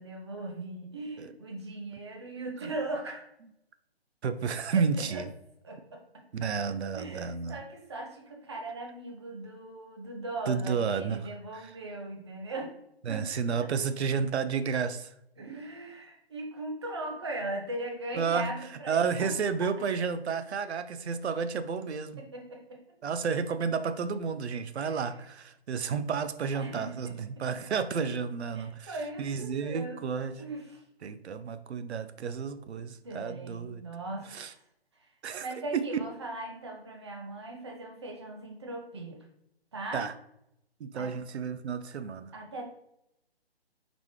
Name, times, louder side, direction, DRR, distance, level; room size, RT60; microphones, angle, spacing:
voice 1, 0.0-3.3 4.7-5.2 5.6-12.7 13.1-13.3 13.5-13.7 15.4-19.3 19.6-19.7 22.2-22.8 24.8-25.1 26.5-27.2 28.5-30.8 33.0-34.6 35.0-35.1 35.4-39.2 39.7-40.1 40.9-41.1 42.3-42.6, right 2 dB, 25° right, 2 dB, 0.5 m, -39 dB
voice 2, 4.2-5.3 6.3-7.6 10.5-11.7 13.0-15.1 18.2-18.5 18.9-22.2 23.0-30.3 31.0-33.8 34.3-34.5 35.2-35.5 35.7-35.8 39.9-40.1 40.8-42.3, right 6 dB, 85° right, 11 dB, 0.5 m, -31 dB
3.9 x 3.5 x 3.2 m, 0.79 s
hypercardioid pair, 155°, 32 cm